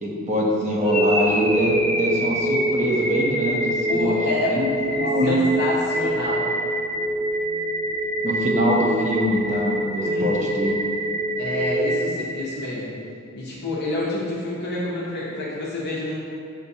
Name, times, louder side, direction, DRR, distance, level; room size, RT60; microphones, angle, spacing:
voice 1, 0.0-4.1 4.5-4.7 4.9-5.4 8.2-10.8, equal, 30° right, -3 dB, 0.6 m, -23 dB
sound 1, 0.8-12.9, equal, 10° left, 0.5 m, -25 dB
voice 2, 3.9-6.4 10.0-10.5 11.4-12.9 13.3-16.2, left 2 dB, 50° left, -7 dB, 0.7 m, -28 dB
6.8 x 2.6 x 2.6 m, 2.5 s
head